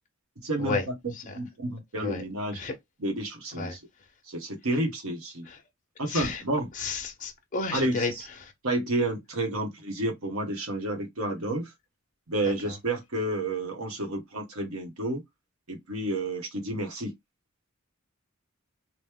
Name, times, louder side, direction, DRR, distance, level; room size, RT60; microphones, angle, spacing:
voice 1, 0.4-2.6 3.0-3.8 4.3-5.5 6.0-6.7 7.7-8.3 8.6-11.7 12.3-15.2 15.7-17.1, right 1 dB, 85° right, 1.2 m, -30 dB
voice 2, 6.1-6.4 6.8-8.1 8.4-8.5, left 4 dB, 35° left, 0.8 m, -31 dB
3.1 x 2.2 x 3.5 m
head